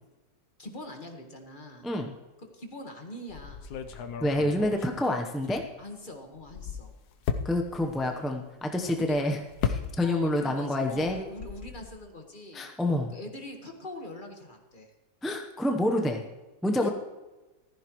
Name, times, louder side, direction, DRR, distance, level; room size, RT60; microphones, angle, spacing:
voice 1, 0.6-1.9 2.4-3.6 5.8-6.9 8.0-8.1 9.0-9.2 10.0-12.7 13.1-14.9 16.8-16.9, left 1 dB, 30° left, 3 dB, 1.5 m, -42 dB
voice 2, 1.8-2.1 4.2-5.6 7.4-9.4 9.7-11.2 12.5-13.1 15.2-16.2 16.6-16.9, left 1 dB, ahead, 3 dB, 0.3 m, -27 dB
sound 1, 3.3-6.0 6.3-10.4 10.7-12.0, left 7 dB, 65° left, 1.3 m, -36 dB
15.0 x 14.0 x 3.1 m, 1.1 s
omnidirectional pair, 1.9 m